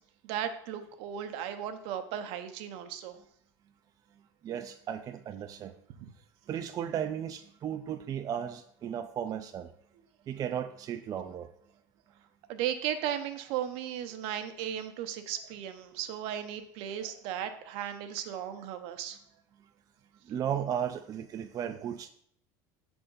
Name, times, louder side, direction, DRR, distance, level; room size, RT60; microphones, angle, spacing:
voice 1, 0.2-3.2 6.0-6.1 12.5-19.2, right 10 dB, 70° right, 9 dB, 0.7 m, -36 dB
voice 2, 4.4-5.7 6.5-9.7 10.3-11.5 20.3-22.1, right 9 dB, 35° right, 7 dB, 0.4 m, -35 dB
5.3 x 3.5 x 5.4 m, 0.67 s
supercardioid pair, 100°, 10 cm